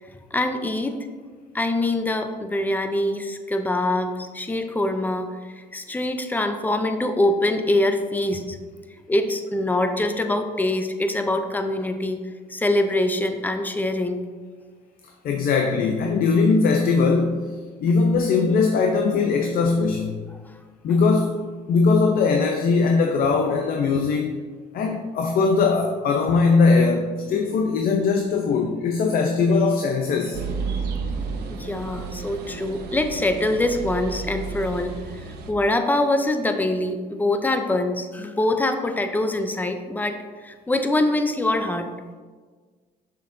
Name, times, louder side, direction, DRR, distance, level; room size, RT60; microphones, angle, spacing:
voice 1, 0.3-1.0 1.5-8.6 9.1-12.2 12.5-14.2 31.5-34.9 35.5-41.9, left 1 dB, 10° left, 7 dB, 0.6 m, -24 dB
voice 2, 15.2-20.3 20.8-21.4 21.7-24.4 24.7-30.4, left 4 dB, 60° left, 3 dB, 0.6 m, -20 dB
sound 1, 30.3-35.5, right 5 dB, 75° right, 0.8 m, -32 dB
6.7 x 6.5 x 2.6 m, 1.5 s
cardioid pair, 110°, 17 cm